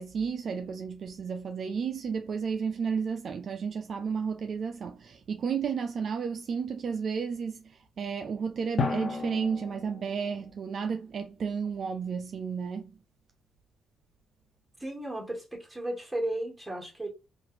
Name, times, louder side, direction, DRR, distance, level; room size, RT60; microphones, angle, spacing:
voice 1, 0.0-13.0, right 6 dB, 55° right, 0.4 m, -32 dB
Drum, 8.8-11.1, left 4 dB, 55° left, 0.7 m, -34 dB
voice 2, 14.8-17.1, right 1 dB, 5° right, 1.5 m, -34 dB
2.8 x 2.5 x 3.1 m
cardioid pair, 90°, 0 cm